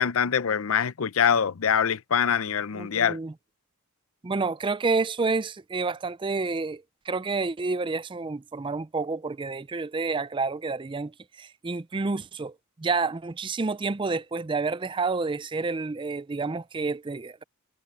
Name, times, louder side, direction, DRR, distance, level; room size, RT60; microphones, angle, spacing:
voice 1, 0.0-3.2, left 7 dB, 65° left, 0.6 m, -24 dB
voice 2, 2.7-3.3 4.2-17.4, right 4 dB, 20° right, 0.4 m, -29 dB
head